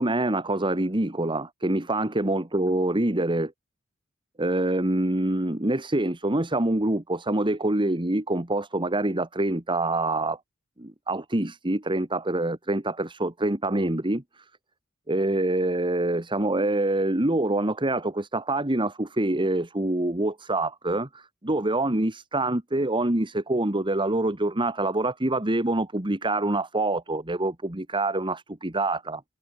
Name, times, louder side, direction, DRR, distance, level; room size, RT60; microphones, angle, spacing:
voice 1, 0.0-3.5 4.4-10.4 10.8-14.2 15.1-29.2, right 2 dB, 25° right, 1.8 m, -25 dB
head